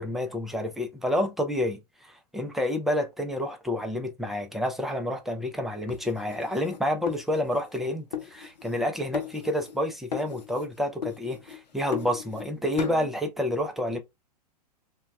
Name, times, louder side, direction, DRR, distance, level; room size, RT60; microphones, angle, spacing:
voice 1, 0.0-14.0, left 1 dB, ahead, 0.4 m, -29 dB
sound 1, 5.9-7.8 8.1-8.9 9.1-9.8 10.1-10.7 11.0-12.5 12.8-13.1, left 8 dB, 85° left, 0.5 m, -37 dB
2.2 x 2.2 x 3.3 m
hypercardioid pair, 105°, 21 cm